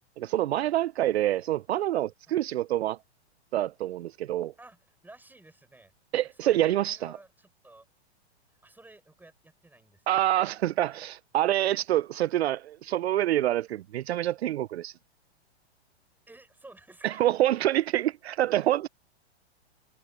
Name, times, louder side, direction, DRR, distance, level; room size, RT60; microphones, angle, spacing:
voice 1, 0.2-3.0 3.5-4.5 6.1-7.1 10.1-14.9 17.0-18.9, right 13 dB, 70° right, 0.7 m, -26 dB
voice 2, 4.6-5.9 6.2-7.9 8.6-10.3 16.3-17.2, right 2 dB, 5° right, 8.0 m, -53 dB
hypercardioid pair, 125°, 34 cm